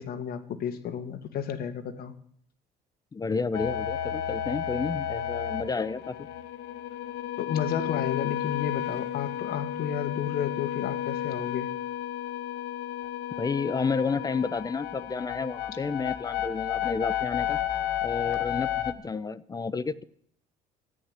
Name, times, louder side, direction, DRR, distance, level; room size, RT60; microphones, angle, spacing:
voice 1, 0.0-2.1 7.4-11.7, left 8 dB, 65° left, 9 dB, 1.9 m, -32 dB
voice 2, 3.1-6.2 13.4-17.6 18.0-20.0, left 4 dB, 20° left, 18 dB, 0.6 m, -31 dB
sound 1, 3.5-18.9, left 11 dB, 85° left, 1.4 m, -32 dB
13.5 x 10.0 x 8.0 m, 0.65 s
cardioid pair, 110°, 17 cm